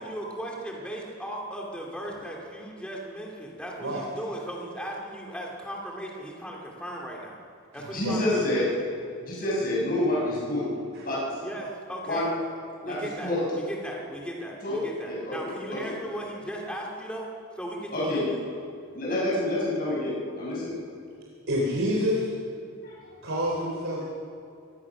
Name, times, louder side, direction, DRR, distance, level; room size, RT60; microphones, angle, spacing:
voice 1, 0.0-7.4 7.7-8.5 11.4-12.3 12.8-17.3 17.5-18.4, right 1 dB, 5° left, -2 dB, 2.5 m, -37 dB
voice 2, 7.9-8.6 9.2-10.6 11.0-11.2 12.1-12.3 12.8-13.0 13.2-13.4 14.6-14.8 15.0-15.4 15.7-15.8 17.9-18.3 18.9-20.8 22.8-22.9, left 1 dB, 40° left, -6 dB, 6.5 m, -27 dB
voice 3, 21.5-22.3 23.2-24.0, equal, 60° right, -3 dB, 3.6 m, -27 dB
24.0 x 19.0 x 6.1 m, 2.4 s
head